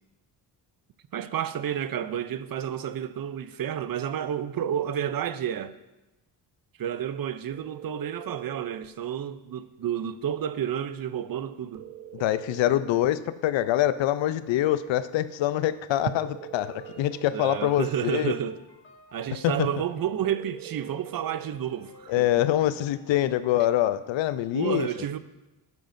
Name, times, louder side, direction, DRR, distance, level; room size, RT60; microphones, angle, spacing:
voice 1, 1.1-5.8 6.8-11.9 17.3-18.6 19.1-22.3 24.5-25.2, right 9 dB, 50° right, 0.6 m, -30 dB
sound 1, 7.5-8.9 11.7-13.1 16.0-17.4 20.2-21.6, right 13 dB, 80° right, 0.8 m, -43 dB
voice 2, 12.1-18.3 19.4-19.7 22.1-24.9, left 13 dB, 75° left, 0.6 m, -25 dB
sound 2, 16.7-23.1, left 2 dB, 25° left, 3.2 m, -54 dB
11.5 x 9.3 x 2.7 m
cardioid pair, 65°, 46 cm